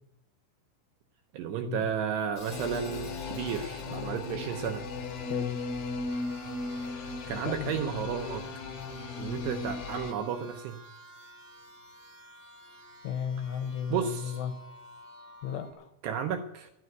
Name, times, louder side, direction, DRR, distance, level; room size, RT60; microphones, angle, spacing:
voice 1, 1.3-4.9 7.3-8.5 9.2-10.8 13.9-14.4 16.0-16.7, right 8 dB, 80° right, 6 dB, 2.5 m, -33 dB
Hi-hat, 2.4-6.6, left 3 dB, 35° left, 1.7 m, -49 dB
sound 1, 2.5-10.1, left 3 dB, 60° left, 2.9 m, -37 dB
voice 2, 5.3-5.6 7.4-7.8 13.0-14.6 15.4-15.9, left 8 dB, 75° left, 7 dB, 3.0 m, -34 dB
sound 2, 6.1-15.7, right 1 dB, 60° right, 1.1 m, -52 dB
13.0 x 8.5 x 9.4 m, 0.84 s
omnidirectional pair, 5.5 m